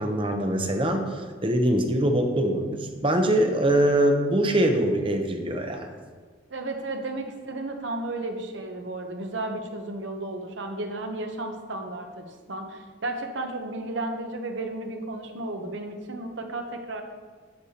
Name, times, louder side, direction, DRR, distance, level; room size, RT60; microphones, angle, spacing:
voice 1, 0.0-5.9, right 1 dB, 25° right, 4 dB, 0.7 m, -23 dB
voice 2, 6.5-17.0, right 2 dB, 70° right, 4 dB, 0.9 m, -33 dB
11.5 x 6.6 x 2.9 m, 1.5 s
head